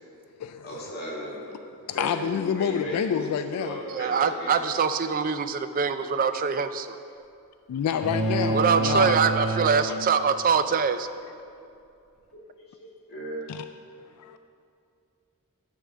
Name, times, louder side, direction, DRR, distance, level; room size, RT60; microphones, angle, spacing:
voice 1, 0.6-1.5 1.9-4.6 11.4-11.5 12.3-12.5 12.8-13.4, equal, 45° left, -4 dB, 2.1 m, -36 dB
voice 2, 2.0-3.8 7.7-9.2 9.9-10.0 13.5-13.6 14.2-14.4, left 7 dB, 90° left, 11 dB, 0.3 m, -28 dB
voice 3, 3.9-7.0 8.5-11.1, right 6 dB, 40° right, 10 dB, 0.3 m, -24 dB
sound 1, 8.0-10.6, right 2 dB, ahead, 1.7 m, -28 dB
10.0 x 3.7 x 6.6 m, 2.5 s
head